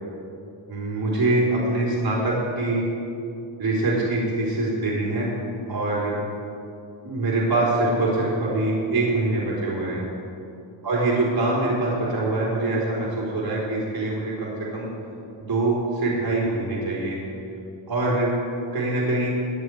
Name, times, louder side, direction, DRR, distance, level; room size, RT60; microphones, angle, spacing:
voice 1, 0.7-2.9 3.6-5.3 5.7-6.2 7.0-10.0 10.8-14.9 15.4-17.2 17.9-18.3 18.7-19.3, right 2 dB, 45° right, -5 dB, 3.8 m, -24 dB
16.5 x 10.0 x 4.7 m, 2.6 s
cardioid pair, 90°, 48 cm